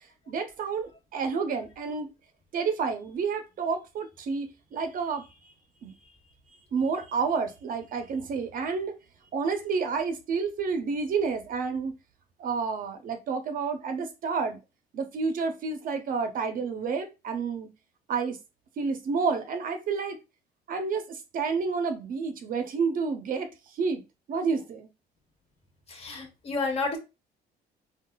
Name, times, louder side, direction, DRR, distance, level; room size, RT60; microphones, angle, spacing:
voice 1, 0.3-2.1 2.5-5.3 5.8-5.9 6.7-8.9 9.3-11.9 12.4-14.6 14.9-17.7 18.1-18.4 18.8-20.2 20.7-24.0 24.3-24.9, right 5 dB, 55° right, 0.6 m, -30 dB
voice 2, 25.9-27.0, left 3 dB, 35° left, 1.2 m, -30 dB
3.9 x 2.3 x 2.2 m
cardioid pair, 110°, 17 cm